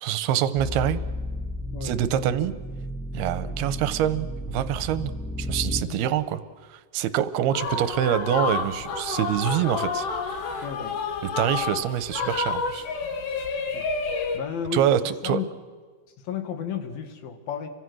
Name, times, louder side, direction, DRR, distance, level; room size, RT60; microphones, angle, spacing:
voice 1, 0.0-1.0 1.8-2.5 3.1-5.1 5.4-6.4 6.9-10.7 11.2-12.8 14.7-15.4, right 10 dB, 75° right, 13 dB, 2.8 m, -25 dB
sound 1, 0.6-5.8, equal, 5° left, 0.8 m, -33 dB
voice 2, 5.9-6.3 10.6-11.0 13.7-13.8 14.3-15.5 16.3-17.7, left 8 dB, 60° left, 7 dB, 3.5 m, -33 dB
sound 2, 7.5-14.4, left 4 dB, 80° left, 4.5 m, -29 dB
30.0 x 25.0 x 6.3 m, 1.5 s
omnidirectional pair, 4.8 m